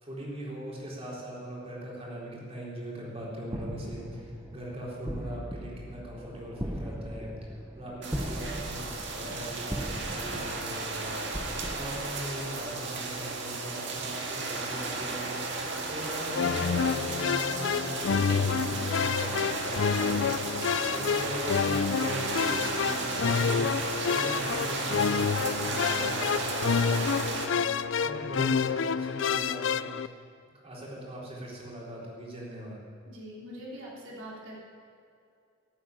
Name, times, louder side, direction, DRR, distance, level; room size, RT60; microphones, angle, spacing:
voice 1, 0.0-15.4 15.9-27.5 28.0-30.1 30.6-32.8, right 1 dB, 30° right, -4 dB, 4.0 m, -40 dB
sound 1, 3.5-13.0, equal, 10° right, 0.9 m, -39 dB
sound 2, 8.0-27.5, right 3 dB, 60° right, 1.9 m, -34 dB
sound 3, 16.3-30.1, left 6 dB, 65° left, 0.4 m, -28 dB
voice 2, 33.1-34.6, equal, 90° right, -5 dB, 3.5 m, -43 dB
14.5 x 8.7 x 9.5 m, 2.4 s
head